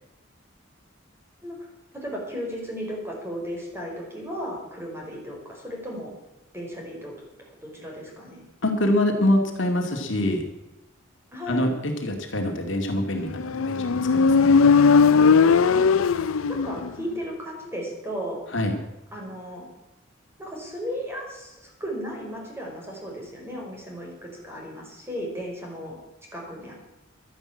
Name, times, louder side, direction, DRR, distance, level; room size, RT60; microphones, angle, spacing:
voice 1, 1.9-6.1 6.5-7.1 7.6-8.4 11.3-11.6 15.7-16.2 16.4-18.4 19.1-19.7 20.4-25.9 26.3-26.7, equal, 10° right, -1 dB, 4.8 m, -35 dB
voice 2, 8.6-10.4 11.5-14.6 18.5-18.8, left 1 dB, 65° left, 3 dB, 2.2 m, -25 dB
Motorcycle, 13.4-17.0, left 5 dB, 85° left, 0.5 m, -18 dB
12.5 x 10.5 x 8.7 m, 0.96 s
head